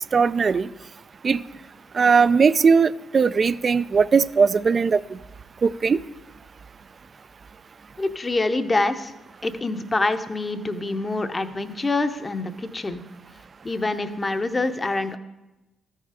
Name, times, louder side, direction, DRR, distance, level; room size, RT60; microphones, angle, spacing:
voice 1, 0.1-0.7 1.2-1.4 1.9-5.2 5.6-6.0, right 5 dB, 45° right, 17 dB, 0.3 m, -19 dB
voice 2, 8.0-9.1 9.4-13.0 13.6-15.2, left 2 dB, 25° left, 9 dB, 0.7 m, -25 dB
13.0 x 5.6 x 4.9 m, 1.0 s
cardioid pair, 70°, 0 cm